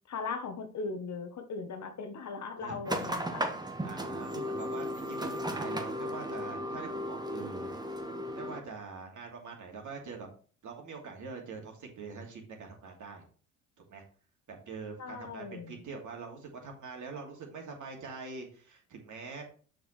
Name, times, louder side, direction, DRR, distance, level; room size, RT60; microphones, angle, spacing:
voice 1, 0.1-3.4 15.0-15.8, left 4 dB, 40° left, 8 dB, 1.2 m, -38 dB
sound 1, 2.8-8.6, equal, 10° right, 1.4 m, -35 dB
voice 2, 3.8-7.7 8.3-10.3 10.6-13.2 13.9-14.0 14.5-19.4, right 4 dB, 45° right, 1 dB, 2.7 m, -44 dB
6.8 x 6.6 x 3.2 m, 0.41 s
hypercardioid pair, 55°, 41 cm